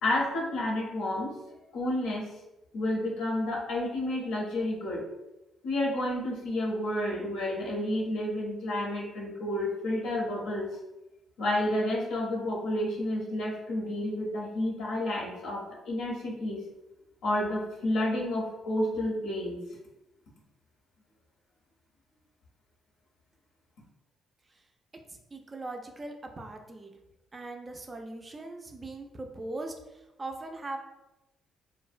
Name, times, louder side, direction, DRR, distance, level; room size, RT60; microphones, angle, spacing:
voice 1, 0.0-1.3 1.7-2.3 2.7-5.0 5.6-10.7 11.4-16.6 17.2-19.6, left 1 dB, 85° left, -3 dB, 0.6 m, -30 dB
voice 2, 25.1-26.9 27.3-30.8, right 2 dB, 30° right, 4 dB, 0.3 m, -40 dB
2.6 x 2.0 x 2.4 m, 0.97 s
cardioid pair, 90°, 0 cm